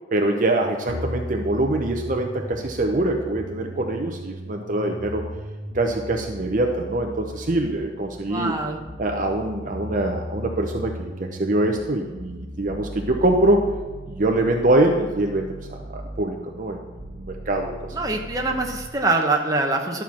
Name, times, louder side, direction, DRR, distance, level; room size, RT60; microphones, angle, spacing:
voice 1, 0.1-5.2 5.7-8.5 9.0-13.6 14.1-16.8 17.1-17.9, right 1 dB, 45° right, 3 dB, 0.8 m, -24 dB
sound 1, 0.9-18.9, equal, 80° right, 1.3 m, -37 dB
voice 2, 8.3-8.8 17.9-20.0, right 2 dB, 20° right, 1 dB, 1.0 m, -24 dB
11.5 x 4.6 x 7.2 m, 1.3 s
head